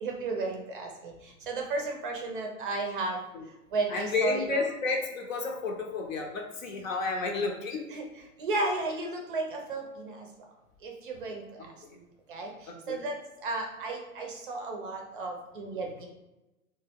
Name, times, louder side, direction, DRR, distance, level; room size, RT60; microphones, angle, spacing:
voice 1, 0.0-3.2 3.7-4.6 7.9-8.0 8.4-10.3 10.8-11.4 12.3-12.5 12.9-16.1, right 3 dB, 35° right, 2 dB, 0.5 m, -33 dB
voice 2, 3.9-7.8 11.8-12.0 12.7-13.0, left 3 dB, 60° left, 2 dB, 0.8 m, -31 dB
2.8 x 2.2 x 3.4 m, 1.0 s
figure-of-eight pair, 115°, 45 cm